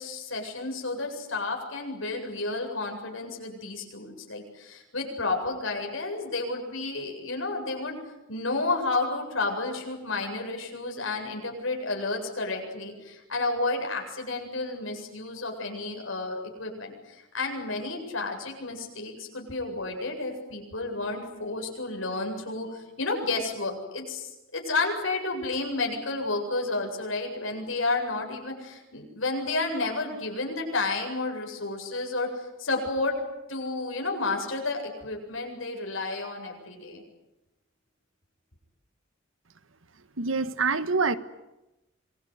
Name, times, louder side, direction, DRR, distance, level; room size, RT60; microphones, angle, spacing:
voice 1, 0.0-8.0 8.3-33.2 33.5-37.0, left 3 dB, 85° left, 2 dB, 7.9 m, -31 dB
voice 2, 40.2-41.2, right 4 dB, 90° right, 13 dB, 1.5 m, -25 dB
26.5 x 23.0 x 9.6 m, 0.95 s
head